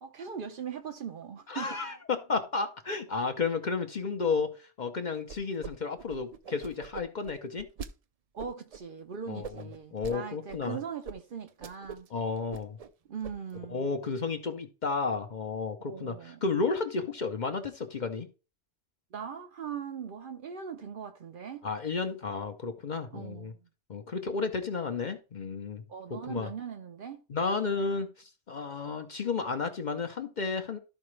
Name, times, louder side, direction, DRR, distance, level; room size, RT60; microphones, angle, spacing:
voice 1, 0.0-1.8 8.3-12.1 13.1-13.9 15.8-16.4 19.1-21.7 23.1-23.7 25.9-27.2, right 7 dB, 55° right, 0.8 m, -40 dB
voice 2, 1.5-7.7 9.3-10.8 12.1-12.8 13.7-18.3 21.6-23.5 23.9-25.8 26.1-26.5 27.3-30.8, left 4 dB, 45° left, 0.7 m, -32 dB
sound 1, 5.3-5.7 6.0-7.9 8.4-8.8 9.4-10.2 10.5-10.6 11.0-11.2 11.5-12.1 12.4-12.9 13.2-13.6, right 6 dB, 70° right, 0.3 m, -42 dB
12.5 x 4.8 x 3.2 m
omnidirectional pair, 1.2 m